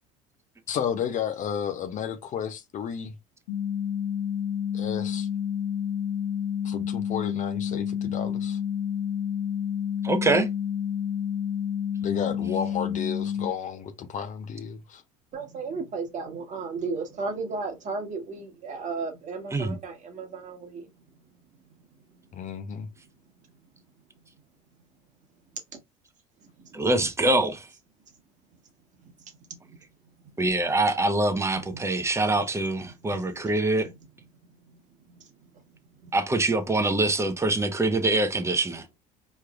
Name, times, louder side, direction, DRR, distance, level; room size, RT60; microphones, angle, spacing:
voice 1, 0.7-3.1 4.7-5.3 6.6-8.6 12.0-15.0 22.3-22.9, left 8 dB, 40° left, 0.7 m, -32 dB
sound 1, 3.5-13.5, left 8 dB, 75° left, 1.2 m, -29 dB
voice 2, 10.0-10.5 19.5-19.8 26.7-27.7 30.4-33.9 36.1-38.8, right 2 dB, 15° right, 0.9 m, -24 dB
voice 3, 15.3-20.9 26.6-26.7 29.7-29.8 32.9-33.3 33.8-33.9 35.1-35.2 36.0-36.1, right 4 dB, 40° right, 1.4 m, -34 dB
4.4 x 3.3 x 2.4 m
hypercardioid pair, 70°, 19 cm